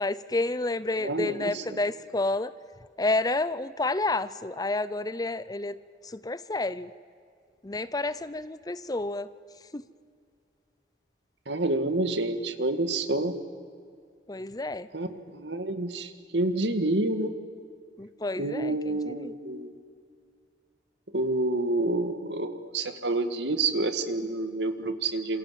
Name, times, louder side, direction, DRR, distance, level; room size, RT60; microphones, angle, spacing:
voice 1, 0.0-2.5 3.0-5.8 6.0-6.9 7.6-9.3 9.7-9.8 14.3-14.9 18.0-19.3, left 2 dB, 20° left, 16 dB, 0.6 m, -30 dB
voice 2, 1.0-1.6 11.5-13.3 14.9-17.3 18.4-19.7 21.1-25.4, right 2 dB, 75° right, 9 dB, 2.0 m, -28 dB
27.5 x 26.5 x 7.6 m, 2.2 s
head